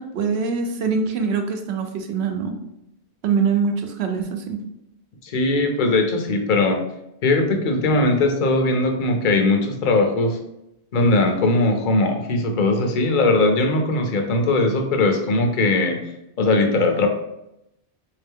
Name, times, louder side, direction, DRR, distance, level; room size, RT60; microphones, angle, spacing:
voice 1, 0.0-2.6 3.2-4.6, right 5 dB, 75° right, 4 dB, 0.9 m, -23 dB
voice 2, 5.2-6.8 7.2-10.4 10.9-16.0 16.4-17.1, left 2 dB, 55° left, 4 dB, 0.7 m, -19 dB
3.6 x 2.8 x 3.5 m, 0.83 s
omnidirectional pair, 1.1 m